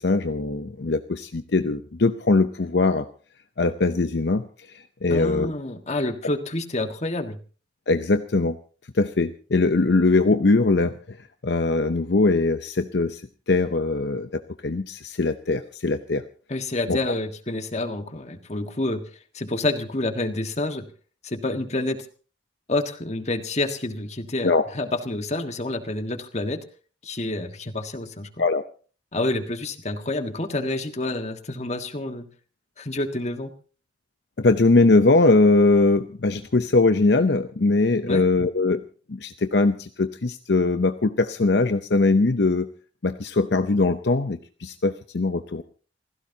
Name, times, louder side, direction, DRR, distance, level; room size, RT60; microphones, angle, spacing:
voice 1, 0.0-3.1 3.6-4.4 4.7-5.5 7.9-8.6 8.9-11.2 11.4-13.2 13.5-16.2 16.9-17.0 24.4-24.7 28.4-28.6 34.4-38.8 39.1-42.7 43.0-45.6, left 3 dB, 65° left, 9 dB, 0.7 m, -21 dB
voice 2, 5.1-7.4 16.5-19.0 19.3-20.9 21.2-22.0 22.7-26.6 27.0-28.3 29.1-32.3 32.8-33.5 38.0-38.3, left 2 dB, 35° left, 6 dB, 1.6 m, -28 dB
28.0 x 16.0 x 2.8 m, 0.40 s
head